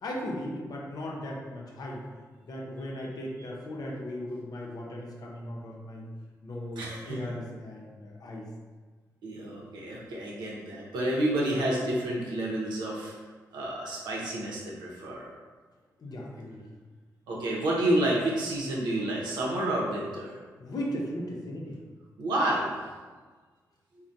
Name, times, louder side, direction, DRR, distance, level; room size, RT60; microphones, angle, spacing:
voice 1, 0.0-2.1 2.4-6.1 6.4-8.5 16.0-16.6 20.6-21.8, left 1 dB, 60° left, -2 dB, 0.6 m, -37 dB
voice 2, 6.8-7.2 9.2-13.1 13.5-15.3 17.3-20.4 22.2-22.8, right 1 dB, 85° right, -4 dB, 0.6 m, -29 dB
3.2 x 2.1 x 2.6 m, 1.4 s
supercardioid pair, 45°, 7 cm